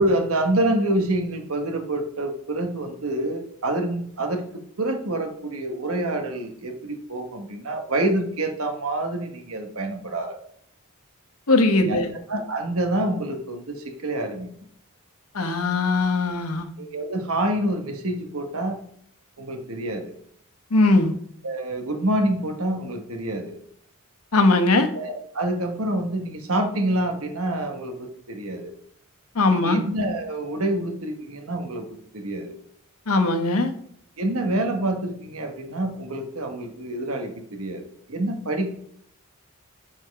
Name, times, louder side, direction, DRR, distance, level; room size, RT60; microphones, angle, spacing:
voice 1, 0.0-4.4 4.8-10.3 11.8-12.0 12.3-14.5 16.8-18.8 19.4-20.1 21.4-23.6 24.9-28.7 29.5-32.5 34.2-38.7, right 1 dB, 70° right, 5 dB, 1.3 m, -27 dB
voice 2, 11.5-12.1 15.3-16.7 20.7-21.1 24.3-24.9 29.3-29.8 33.1-33.7, left 2 dB, 80° left, 6 dB, 1.0 m, -20 dB
7.7 x 4.3 x 4.7 m, 0.65 s
head